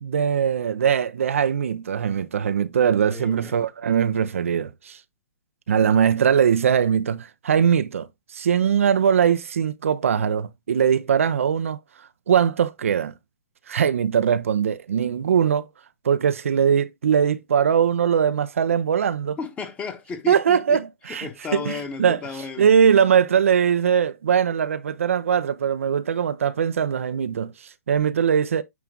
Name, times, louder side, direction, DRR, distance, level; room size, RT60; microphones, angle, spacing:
voice 1, 0.0-5.0 5.7-13.1 13.7-15.7 16.0-19.4 20.3-22.2 22.6-28.6, right 7 dB, 65° right, 0.6 m, -21 dB
voice 2, 3.1-3.6 19.4-20.8 21.1-22.7, left 5 dB, 15° left, 1.4 m, -33 dB
9.4 x 3.4 x 3.7 m
figure-of-eight pair, 125°, 8 cm